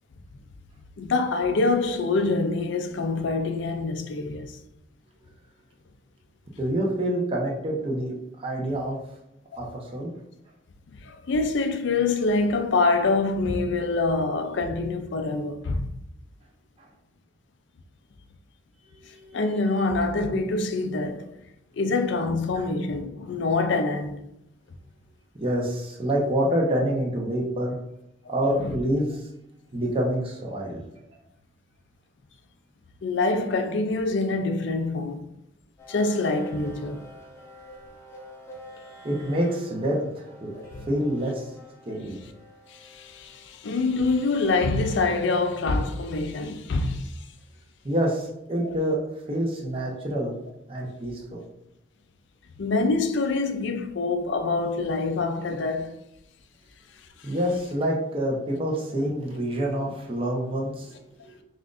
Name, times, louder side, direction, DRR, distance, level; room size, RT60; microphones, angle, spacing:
voice 1, 1.0-4.5 10.9-15.9 19.3-21.3 21.7-24.2 28.2-28.3 28.6-28.7 33.0-35.3 35.9-37.0 40.5-40.9 42.7-47.2 48.6-48.8 52.6-56.0 57.2-57.3, left 3 dB, 65° left, 0.4 m, -25 dB
voice 2, 6.6-8.1 8.4-9.0 9.6-10.1 19.1-19.4 22.5-22.6 25.4-27.8 28.3-29.3 29.7-30.8 39.0-40.5 40.9-41.5 41.8-42.1 47.8-49.0 49.3-50.3 50.7-51.4 57.2-61.0 61.2-61.4, right 1 dB, 30° right, 0.8 m, -27 dB
sound 1, 35.8-46.3, equal, 15° left, 0.8 m, -48 dB
5.7 x 2.5 x 2.5 m
head